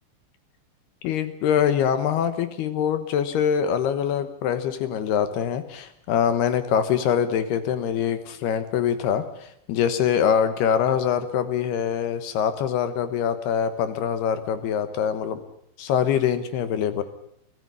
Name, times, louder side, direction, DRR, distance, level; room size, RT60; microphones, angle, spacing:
voice 1, 1.0-15.4 15.8-17.0, left 8 dB, 70° left, 11 dB, 2.7 m, -24 dB
23.5 x 15.0 x 9.7 m, 0.73 s
omnidirectional pair, 5.6 m